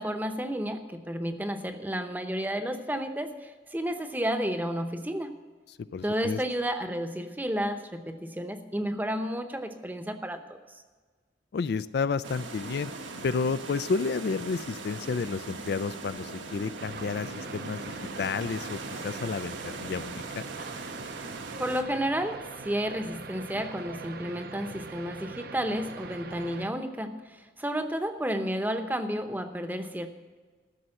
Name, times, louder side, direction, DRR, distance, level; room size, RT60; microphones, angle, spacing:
voice 1, 0.0-5.3 6.0-10.4 21.6-30.1, equal, 10° right, 7 dB, 0.8 m, -31 dB
voice 2, 5.9-6.4 11.5-12.9 13.2-20.2, left 5 dB, 55° left, 14 dB, 0.3 m, -31 dB
sound 1, 12.2-21.8, right 3 dB, 80° right, 1.4 m, -40 dB
sound 2, 16.8-26.7, right 4 dB, 50° right, 0.6 m, -42 dB
14.0 x 6.7 x 7.6 m, 1.4 s
head